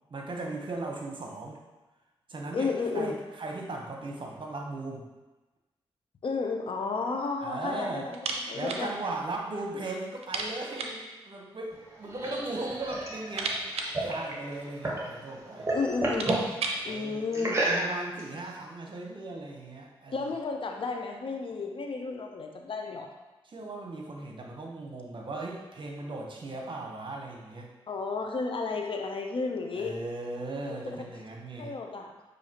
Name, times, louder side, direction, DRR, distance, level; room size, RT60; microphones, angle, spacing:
voice 1, 0.1-1.6 2.3-2.7 2.9-5.1 7.4-8.1 8.5-13.6 14.0-15.7 16.9-20.3 23.4-27.7 29.8-31.7, right 2 dB, 50° right, 0 dB, 0.9 m, -37 dB
voice 2, 2.5-3.2 6.2-8.9 15.7-16.6 16.8-17.6 20.1-23.1 27.9-30.0 30.7-31.0 31.6-32.1, left 4 dB, 55° left, 3 dB, 0.6 m, -32 dB
sound 1, 8.1-8.9 9.2-9.3 9.6-9.7 10.2-11.1 12.0-12.6 12.9-14.9 15.6-15.7 15.9-16.9, right 3 dB, 80° right, 0.5 m, -35 dB
sound 2, 11.7-15.1 15.4-16.5 17.3-18.2, right 2 dB, 25° right, 1.2 m, -31 dB
6.3 x 2.7 x 2.9 m, 1.1 s
supercardioid pair, 45°, 10 cm